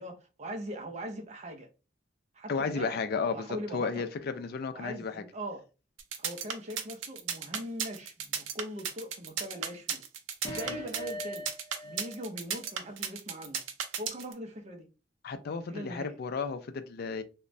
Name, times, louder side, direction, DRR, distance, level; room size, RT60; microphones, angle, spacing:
voice 1, 0.0-1.7 2.3-4.1 4.7-5.6 6.2-10.0 10.5-11.5 11.8-13.6 14.0-14.9 15.7-16.2, equal, 35° right, 0.5 m, -41 dB
voice 2, 2.5-5.2 10.5-10.8 15.2-17.2, left 5 dB, 55° left, 0.4 m, -33 dB
sound 1, 6.0-14.3, right 7 dB, 90° right, 0.5 m, -34 dB
sound 2, 10.4-12.3 12.6-12.7, left 1 dB, 20° left, 0.7 m, -41 dB
3.1 x 2.1 x 2.5 m
head